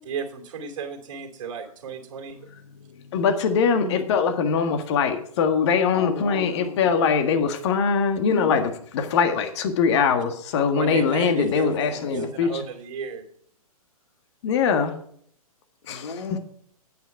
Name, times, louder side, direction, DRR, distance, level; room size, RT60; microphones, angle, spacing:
voice 1, 0.0-2.4 10.7-13.3, right 6 dB, 55° right, 3 dB, 2.8 m, -33 dB
voice 2, 2.3-3.2 3.7-4.0 5.9-6.9 8.2-8.6 11.1-11.7 15.8-16.4, left 4 dB, 80° left, 5 dB, 1.9 m, -35 dB
voice 3, 3.1-12.6 14.4-14.9 15.9-16.1, left 6 dB, 50° left, 7 dB, 1.7 m, -22 dB
9.3 x 9.2 x 4.7 m, 0.62 s
figure-of-eight pair, 120°, 19 cm